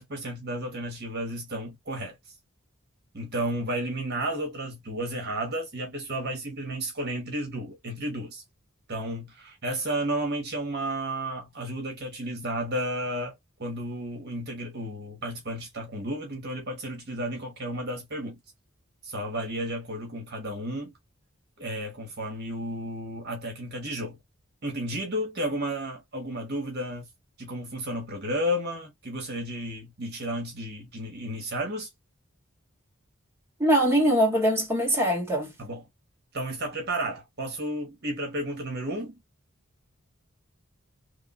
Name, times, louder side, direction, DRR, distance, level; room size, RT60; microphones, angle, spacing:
voice 1, 0.0-2.1 3.1-8.4 8.9-18.4 19.0-20.9 21.6-24.2 24.6-27.1 27.4-31.9 35.6-35.8 36.3-39.2, right 1 dB, 55° right, 1.4 m, -32 dB
voice 2, 33.6-35.5, equal, 15° right, 2.0 m, -22 dB
3.6 x 3.1 x 2.6 m
head